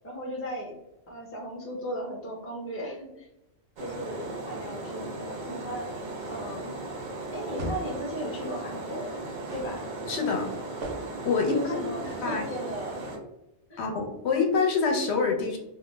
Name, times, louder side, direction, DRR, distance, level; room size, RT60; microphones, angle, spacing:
voice 1, 0.0-0.7 1.1-3.3 3.8-5.9 6.3-6.7 7.3-9.1 9.5-9.9 11.4-13.0 13.7-13.8, equal, 15° left, -2 dB, 0.5 m, -36 dB
sound 1, 3.8-13.2, right 2 dB, 55° right, 0.6 m, -37 dB
sound 2, 6.2-6.7 7.6-8.0 9.5-9.8 10.8-11.3 12.0-12.3, equal, 85° right, 0.9 m, -38 dB
voice 2, 10.1-10.5 11.2-11.8 12.2-12.4 13.8-15.6, left 5 dB, 70° left, 2 dB, 0.8 m, -26 dB
2.3 x 2.0 x 3.1 m, 0.88 s
omnidirectional pair, 1.2 m